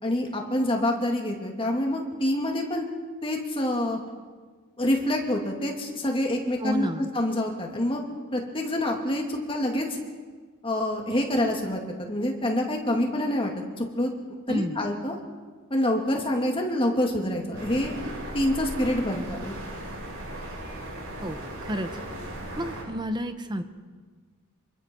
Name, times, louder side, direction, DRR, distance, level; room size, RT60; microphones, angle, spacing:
voice 1, 0.0-2.8 3.2-4.0 4.8-6.9 7.1-8.0 8.3-9.9 10.6-14.1 14.5-15.2 15.7-18.0 18.3-19.5, left 1 dB, 25° left, 1 dB, 2.7 m, -26 dB
voice 2, 6.6-7.1 14.5-14.8 21.2-21.9 22.6-23.6, equal, 20° right, 8 dB, 1.2 m, -30 dB
sound 1, 17.5-22.8, right 1 dB, 70° right, 8.0 m, -37 dB
27.5 x 24.0 x 4.7 m, 1.5 s
head